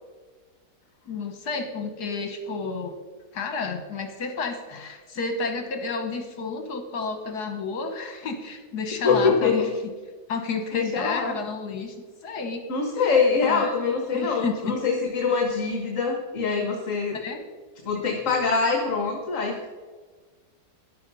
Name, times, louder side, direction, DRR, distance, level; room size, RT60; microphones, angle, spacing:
voice 1, 1.1-3.0 3.3-9.7 10.3-12.0 12.2-12.6 13.0-13.7 14.1-14.7 17.1-17.4, left 4 dB, 70° left, 5 dB, 1.7 m, -31 dB
voice 2, 9.0-9.7 10.7-11.4 12.7-17.2 17.8-19.7, left 5 dB, 50° left, 3 dB, 1.6 m, -24 dB
13.0 x 11.0 x 5.5 m, 1.4 s
omnidirectional pair, 1.8 m